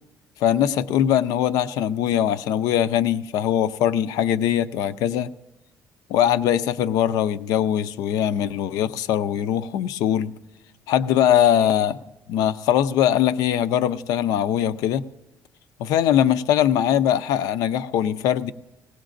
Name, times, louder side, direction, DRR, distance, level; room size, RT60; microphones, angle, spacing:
voice 1, 0.4-5.3 6.1-10.3 10.9-12.0 12.3-15.0 15.8-18.5, left 10 dB, 85° left, 14 dB, 0.4 m, -21 dB
19.5 x 17.0 x 2.5 m, 0.97 s
cardioid pair, 135°, 6 cm